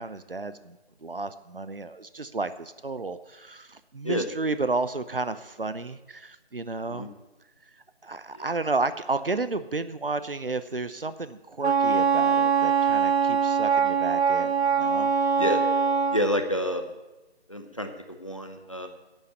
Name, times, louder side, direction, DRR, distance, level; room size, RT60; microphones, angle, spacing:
voice 1, 0.0-7.1 8.0-15.1, right 3 dB, 60° right, 13 dB, 0.8 m, -32 dB
Wind instrument woodwind instrument, 11.6-16.2, right 6 dB, 80° right, 1.4 m, -23 dB
voice 2, 16.1-16.9 17.5-17.9 18.2-18.9, equal, 30° left, 6 dB, 0.9 m, -28 dB
11.0 x 7.5 x 8.3 m, 1.1 s
figure-of-eight pair, 175°, 32 cm